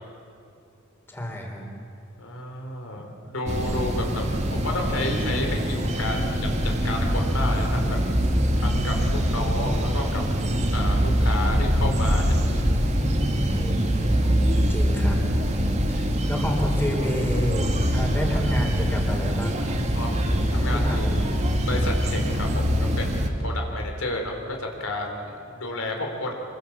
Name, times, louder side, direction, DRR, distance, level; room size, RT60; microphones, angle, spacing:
voice 1, 1.1-1.7 13.5-14.0 14.7-15.2 15.9-17.7 17.9-19.8 20.7-21.2, equal, 10° left, 0 dB, 3.8 m, -29 dB
voice 2, 2.2-4.2 4.5-6.3 6.8-8.0 8.6-10.2 10.7-12.3 20.0-21.2 21.6-26.3, left 2 dB, 85° left, 2 dB, 3.8 m, -31 dB
sound 1, 3.5-23.3, equal, 35° right, 2.3 m, -23 dB
27.0 x 24.5 x 7.3 m, 2.6 s
head